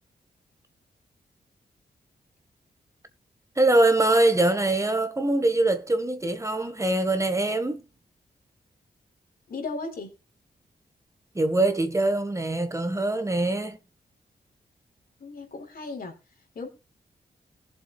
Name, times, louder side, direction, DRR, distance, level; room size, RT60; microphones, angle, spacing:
voice 1, 3.6-7.8 11.3-13.8, right 2 dB, 20° right, 1.5 m, -23 dB
voice 2, 9.5-10.1 15.2-16.1 16.6-16.7, left 3 dB, 65° left, 3.8 m, -35 dB
20.5 x 7.3 x 2.3 m
wide cardioid pair, 95°, 16 cm